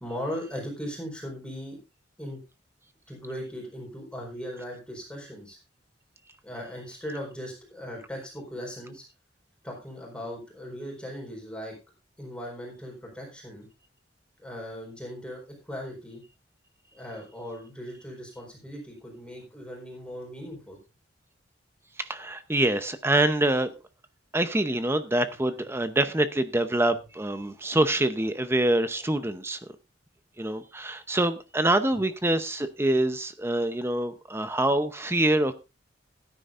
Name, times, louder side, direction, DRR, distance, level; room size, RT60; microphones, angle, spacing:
voice 1, 0.0-1.8 2.2-2.4 3.1-5.6 6.4-9.0 9.6-11.7 12.2-13.7 14.4-16.2 16.9-20.8 27.4-27.6, equal, 5° left, -2 dB, 4.5 m, -38 dB
voice 2, 22.0-23.7 24.3-29.6 30.4-35.5, right 1 dB, 15° right, 10 dB, 0.7 m, -25 dB
16.5 x 10.0 x 2.5 m, 0.27 s
head